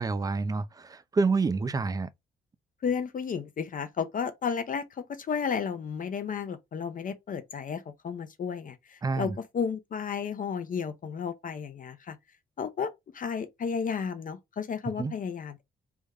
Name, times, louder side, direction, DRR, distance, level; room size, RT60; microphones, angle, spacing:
voice 1, 0.0-2.1 9.0-9.4 15.0-15.1, right 4 dB, 20° right, 0.4 m, -28 dB
voice 2, 2.8-12.2 12.6-15.6, left 6 dB, 45° left, 0.6 m, -33 dB
3.4 x 2.1 x 3.4 m
cardioid pair, 90°, 20 cm